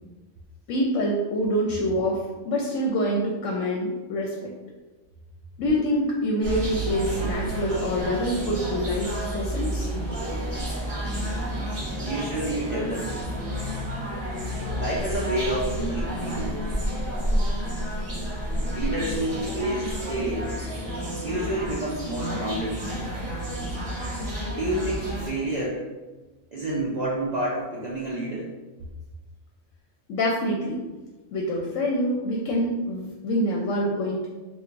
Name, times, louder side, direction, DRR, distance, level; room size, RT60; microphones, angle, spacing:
voice 1, 0.7-2.2 2.4-4.5 5.6-9.9 30.1-30.8 31.3-34.3, equal, 75° left, -2 dB, 0.9 m, -26 dB
sound 1, 6.4-25.3, equal, 25° right, 0.9 m, -30 dB
voice 2, 12.0-13.2 14.8-16.6 18.7-20.5 21.2-22.8 24.5-25.9 26.5-28.5, right 1 dB, 70° right, -6 dB, 0.4 m, -29 dB
4.4 x 2.4 x 2.5 m, 1.2 s
omnidirectional pair, 1.4 m